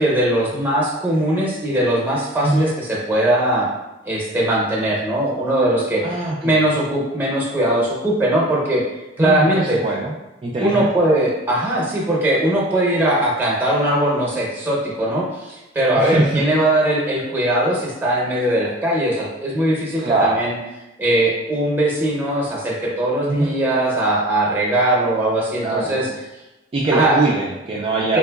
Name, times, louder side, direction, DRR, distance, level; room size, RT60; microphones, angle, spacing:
voice 1, 0.0-3.7 4.0-8.8 9.2-9.8 10.6-20.6 21.0-26.1 26.9-27.2 28.1-28.2, right 1 dB, 10° right, -3 dB, 0.8 m, -20 dB
voice 2, 6.0-6.6 9.2-10.1 10.4-10.9 16.0-16.4 20.0-20.4 23.3-23.5 25.6-26.1 26.7-28.2, right 2 dB, 30° right, -4 dB, 0.3 m, -21 dB
3.7 x 2.9 x 2.3 m, 0.99 s
head